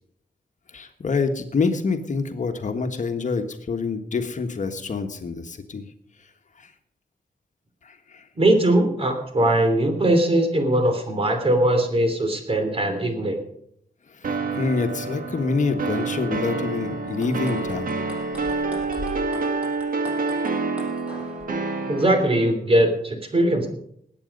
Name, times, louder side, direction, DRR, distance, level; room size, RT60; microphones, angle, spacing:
voice 1, 0.7-5.9 6.6-6.7 7.8-8.3 14.1-18.0 18.5-18.7, left 4 dB, 50° left, 6 dB, 1.5 m, -27 dB
voice 2, 8.4-13.4 21.9-23.7, right 1 dB, 35° right, 6 dB, 3.1 m, -20 dB
sound 1, 14.2-22.5, right 3 dB, 65° right, 1.8 m, -28 dB
sound 2, 17.1-21.5, left 2 dB, 10° right, 5.8 m, -40 dB
20.0 x 8.8 x 5.4 m, 0.72 s
wide cardioid pair, 95°, 16 cm